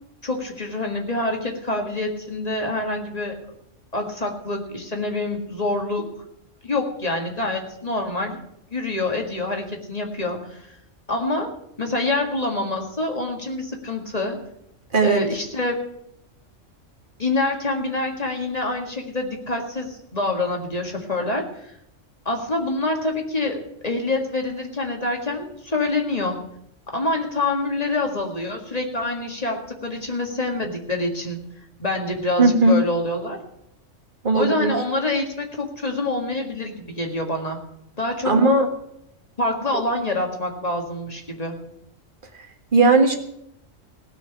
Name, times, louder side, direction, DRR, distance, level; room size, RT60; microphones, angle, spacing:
voice 1, 0.2-3.4 3.9-6.1 6.6-8.4 8.7-10.6 11.1-11.5 11.8-14.4 15.0-15.8 17.2-21.7 22.3-26.4 26.9-31.4 31.8-33.4 34.3-37.6 38.0-38.3 39.4-41.6, left 2 dB, 30° left, 2 dB, 2.0 m, -26 dB
voice 2, 14.9-15.2 32.4-32.8 34.2-34.8 38.2-38.7 42.7-43.2, right 3 dB, 45° right, 5 dB, 1.7 m, -17 dB
17.0 x 6.1 x 8.5 m, 0.76 s
omnidirectional pair, 1.3 m